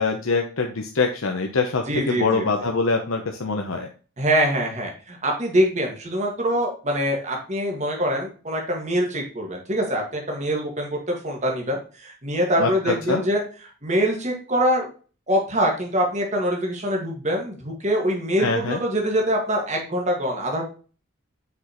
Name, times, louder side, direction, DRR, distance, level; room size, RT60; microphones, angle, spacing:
voice 1, 0.0-3.9 12.6-13.2 18.4-18.8, left 4 dB, 80° left, 3 dB, 0.8 m, -24 dB
voice 2, 1.9-2.5 4.2-14.9 15.3-20.6, equal, 35° right, 0 dB, 1.8 m, -24 dB
6.1 x 5.3 x 3.0 m, 0.37 s
head